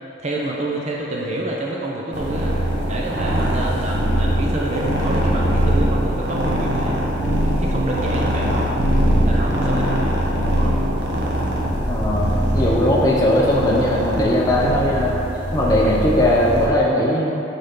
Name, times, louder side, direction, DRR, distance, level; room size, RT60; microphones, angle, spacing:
voice 1, 0.2-2.5 2.9-7.2 7.6-8.7 9.2-10.0 10.4-10.7 12.4-13.0, right 1 dB, 35° right, -3 dB, 0.7 m, -28 dB
sound 1, 2.1-16.7, equal, 60° right, 1.1 m, -21 dB
voice 2, 11.9-15.2 15.5-17.4, left 1 dB, 20° left, -5 dB, 0.6 m, -19 dB
9.0 x 4.2 x 3.7 m, 2.9 s
head